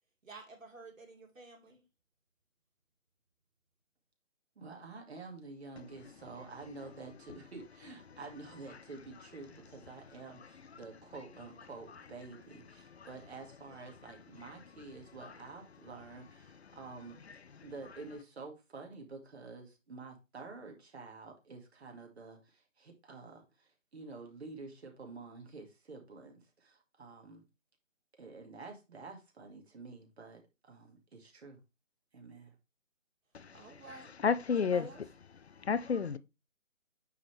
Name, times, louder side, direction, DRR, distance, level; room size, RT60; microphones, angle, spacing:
voice 1, 0.2-1.8 33.5-34.1 34.6-35.0, right 3 dB, 80° right, 2.9 m, -50 dB
voice 2, 4.6-17.2 17.6-27.4 28.2-31.6 32.1-32.6, right 3 dB, 55° right, 2.1 m, -49 dB
voice 3, 33.3-34.9 35.5-36.2, left 6 dB, 55° left, 0.6 m, -32 dB
9.1 x 3.8 x 3.3 m
figure-of-eight pair, 165°, 39 cm